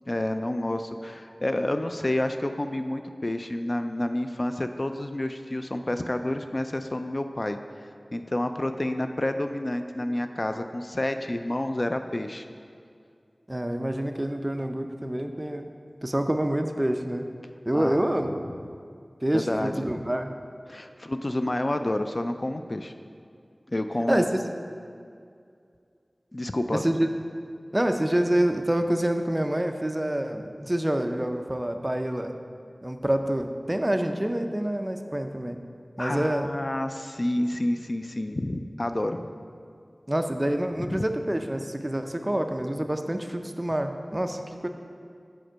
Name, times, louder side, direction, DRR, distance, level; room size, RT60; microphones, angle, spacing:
voice 1, 0.1-7.6 8.1-12.5 17.7-18.0 19.3-19.9 20.7-22.9 23.7-24.3 26.3-26.8 36.0-39.3 40.9-41.0, left 1 dB, 45° left, 7 dB, 0.3 m, -29 dB
voice 2, 13.5-15.7 16.0-17.3 17.7-18.3 19.2-20.3 24.1-24.4 26.7-27.1 27.7-32.3 32.8-35.6 36.0-36.5 40.1-44.7, right 1 dB, 25° right, 6 dB, 0.4 m, -27 dB
5.0 x 4.4 x 6.1 m, 2.3 s
wide cardioid pair, 45°, 0 cm